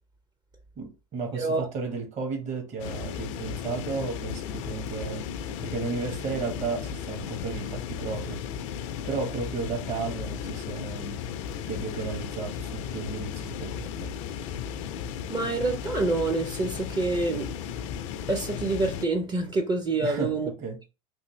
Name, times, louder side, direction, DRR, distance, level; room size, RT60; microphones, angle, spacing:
voice 1, 0.8-8.4 9.0-11.2 11.7-14.1 20.0-20.8, right 4 dB, 40° right, 1.3 m, -34 dB
voice 2, 1.3-1.7 15.3-17.5 18.3-20.5, right 3 dB, 25° right, 0.6 m, -27 dB
sound 1, 2.8-19.1, left 8 dB, 60° left, 0.4 m, -35 dB
3.2 x 2.5 x 3.1 m
hypercardioid pair, 85°, 18 cm